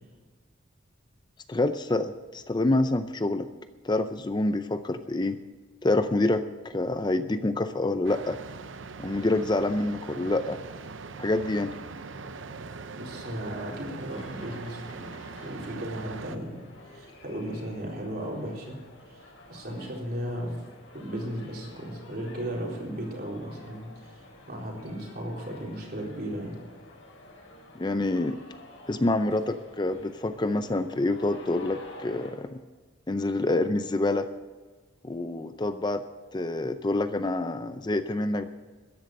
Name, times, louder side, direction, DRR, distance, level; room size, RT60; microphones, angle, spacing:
voice 1, 1.5-3.5 3.8-5.4 5.8-8.4 9.0-10.6 11.2-11.7 27.7-28.4 28.9-32.6 33.1-34.3 35.0-36.0 36.3-38.5, left 2 dB, 20° left, 10 dB, 0.5 m, -27 dB
sound 1, 8.0-16.4, right 4 dB, 75° right, 0.7 m, -41 dB
voice 2, 12.9-15.1 15.4-18.8 19.1-20.6 20.9-26.5, equal, 50° right, -2 dB, 4.1 m, -36 dB
sound 2, 14.1-32.3, left 2 dB, 80° left, 5.1 m, -50 dB
14.0 x 10.5 x 6.6 m, 1.4 s
head